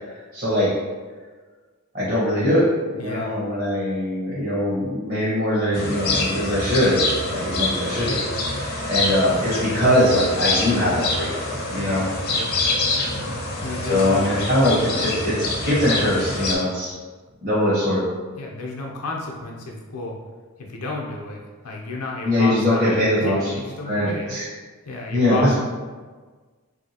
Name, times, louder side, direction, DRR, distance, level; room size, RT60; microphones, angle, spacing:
voice 1, 0.3-0.7 1.9-2.7 2.9-8.4 8.9-11.4 11.7-12.0 13.9-16.9 17.4-18.0 22.2-23.4 23.8-24.4 25.1-25.5, left 1 dB, 40° right, -10 dB, 0.9 m, -21 dB
voice 2, 3.0-3.4 12.3-12.5 13.0-14.5 18.4-20.2 20.6-22.9 23.2-24.3 24.8-25.5, left 2 dB, 85° left, -1 dB, 0.6 m, -32 dB
sound 1, 5.7-16.6, left 2 dB, 45° left, 0.5 m, -26 dB
3.1 x 2.7 x 2.8 m, 1.4 s
head